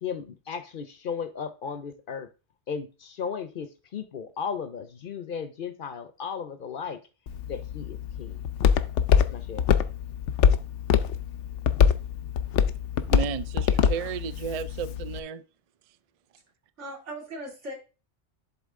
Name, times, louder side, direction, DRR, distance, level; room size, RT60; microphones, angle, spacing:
voice 1, 0.0-2.3 2.7-7.0 7.5-8.4 9.2-9.6, left 6 dB, 55° left, 0.7 m, -35 dB
Walk footsteps, 7.3-15.2, left 7 dB, 85° left, 0.9 m, -24 dB
voice 2, 13.1-15.4, right 7 dB, 55° right, 0.4 m, -33 dB
voice 3, 16.8-17.7, right 1 dB, 85° right, 2.8 m, -38 dB
11.0 x 4.0 x 3.6 m
omnidirectional pair, 1.2 m